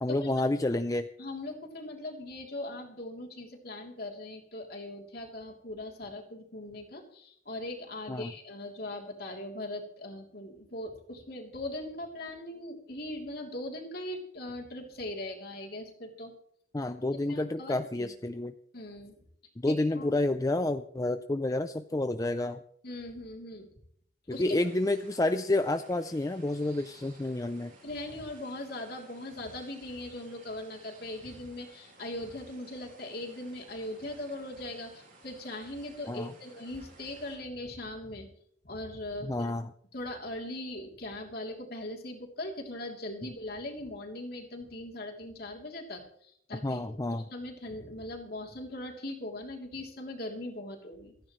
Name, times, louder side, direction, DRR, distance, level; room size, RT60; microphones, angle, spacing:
voice 1, 0.0-1.1 8.1-8.3 16.7-18.5 19.6-22.6 24.3-27.7 36.1-36.3 39.2-39.7 46.6-47.2, left 2 dB, 20° left, 9 dB, 0.4 m, -29 dB
voice 2, 1.2-16.3 17.1-18.1 18.7-19.2 19.6-20.2 22.8-23.7 24.3-24.6 27.8-38.3 38.6-39.5 39.9-51.1, left 1 dB, 55° left, 0 dB, 3.2 m, -40 dB
sound 1, 24.3-37.4, right 2 dB, 45° right, 6.5 m, -57 dB
28.0 x 10.0 x 3.2 m, 0.65 s
head